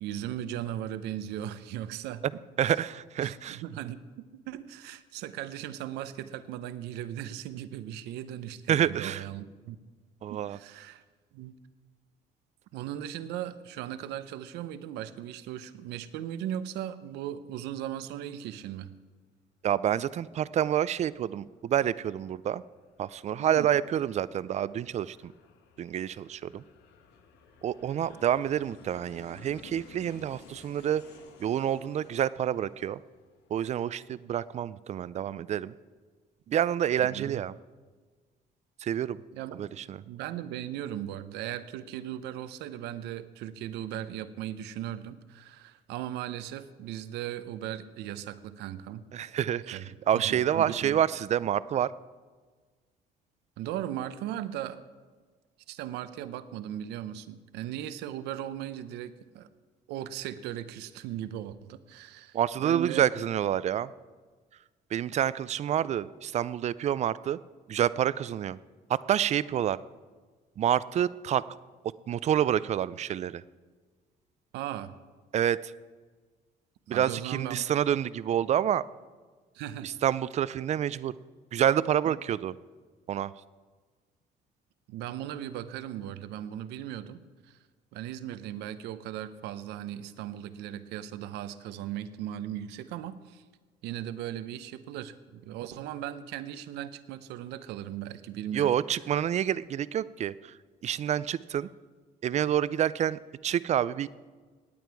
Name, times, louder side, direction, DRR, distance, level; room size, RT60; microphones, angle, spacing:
voice 1, 0.0-2.4 2.7-2.8 3.2-9.8 10.3-11.0 11.3-11.6 12.7-18.9 23.4-23.7 37.1-37.4 39.3-39.6 40.1-49.0 49.7-51.0 53.6-54.8 55.7-59.5 59.9-63.1 74.5-74.9 76.9-77.7 79.5-79.9 82.0-82.2 84.9-87.6 87.9-93.4 93.8-98.7, right 11 dB, 90° right, 13 dB, 0.7 m, -38 dB
voice 2, 2.6-3.6 8.7-9.2 10.2-10.6 19.6-22.6 23.0-25.3 25.8-26.6 27.6-31.0 31.4-33.0 33.5-35.7 36.5-37.5 38.8-39.2 39.5-40.0 49.1-49.8 50.1-51.9 62.3-63.9 64.9-67.4 67.7-68.6 68.9-69.8 70.6-71.4 72.1-73.4 75.3-75.7 76.9-78.8 79.8-81.1 81.5-82.5 83.1-83.3 98.5-100.5 100.8-101.7 102.2-104.1, right 10 dB, 40° right, 18 dB, 0.4 m, -28 dB
Aircraft, 20.9-33.8, left 6 dB, 85° left, 1.3 m, -56 dB
18.5 x 8.7 x 4.7 m, 1.4 s
cardioid pair, 110°, 17 cm